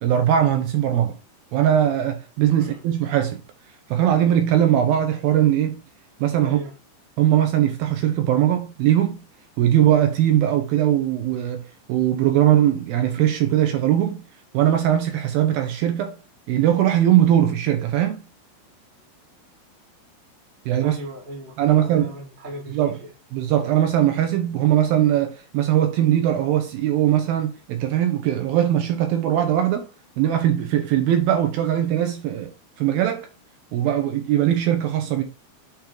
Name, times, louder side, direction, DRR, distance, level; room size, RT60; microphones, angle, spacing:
voice 1, 0.0-1.2 1.5-3.4 3.9-5.8 6.2-6.6 7.2-9.2 9.6-11.6 11.9-14.2 14.5-16.2 16.5-18.2 20.7-21.0 21.6-22.1 22.7-23.0 23.3-29.9 30.2-32.5 32.8-33.3 33.7-35.2, right 11 dB, 80° right, 2.3 m, -20 dB
voice 2, 6.4-6.7 20.8-23.1, right 1 dB, 35° right, 0.7 m, -36 dB
8.7 x 3.0 x 3.8 m
omnidirectional pair, 4.8 m